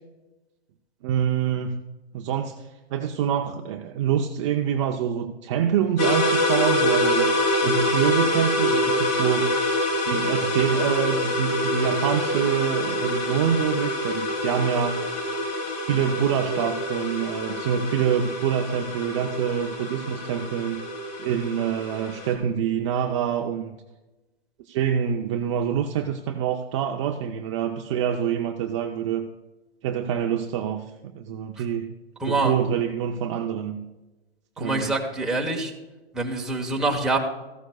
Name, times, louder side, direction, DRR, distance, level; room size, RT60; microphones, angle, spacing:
voice 1, 1.0-1.8 2.1-7.3 7.6-9.5 10.1-15.0 15.8-20.8 21.2-23.8 24.7-29.3 29.8-30.8 31.1-31.9 32.3-33.8 34.6-34.9, right 8 dB, 30° right, 4 dB, 0.6 m, -26 dB
sound 1, 6.0-22.3, left 1 dB, 40° left, 3.7 m, -26 dB
voice 2, 32.2-32.5 34.6-35.7 36.1-37.2, right 2 dB, ahead, -1 dB, 1.2 m, -25 dB
14.5 x 13.0 x 2.3 m, 1.1 s
hypercardioid pair, 145°, 31 cm